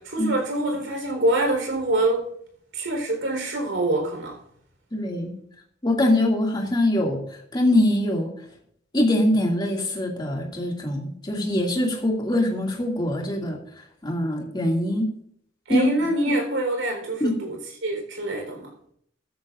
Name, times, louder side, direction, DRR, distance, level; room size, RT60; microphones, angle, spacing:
voice 1, 0.0-2.2 2.7-4.4 15.7-18.7, right 1 dB, 85° right, 3 dB, 4.2 m, -25 dB
voice 2, 4.9-5.3 5.8-8.3 8.9-15.1 15.7-15.9 17.2-17.3, left 1 dB, 25° left, 0 dB, 2.4 m, -23 dB
15.0 x 13.0 x 2.6 m, 0.66 s
head